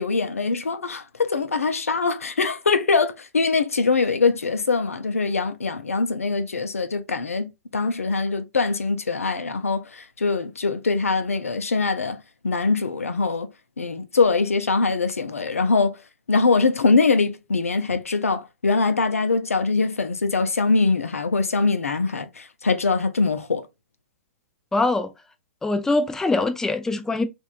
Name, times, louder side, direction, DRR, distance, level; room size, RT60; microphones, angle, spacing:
voice 1, 0.0-13.5 13.8-16.0 16.3-23.7, left 4 dB, 85° left, 0.6 m, -23 dB
voice 2, 24.7-25.1 25.6-27.2, left 2 dB, 5° left, 0.4 m, -23 dB
3.1 x 2.6 x 2.4 m
hypercardioid pair, 120°, 7 cm